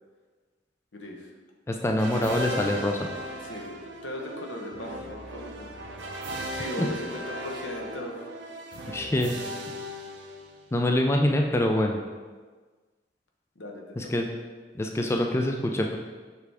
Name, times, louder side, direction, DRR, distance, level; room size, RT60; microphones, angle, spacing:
voice 1, 0.9-1.3 3.4-5.8 6.5-8.2 13.6-14.3, left 1 dB, 80° left, 0 dB, 1.0 m, -38 dB
voice 2, 1.7-3.0 6.8-6.9 8.9-9.4 10.7-12.0 14.0-14.3 14.8-16.0, left 1 dB, 15° left, 2 dB, 0.3 m, -25 dB
sound 1, 2.0-10.9, equal, 75° right, 0.7 m, -37 dB
6.8 x 4.7 x 3.4 m, 1.4 s
head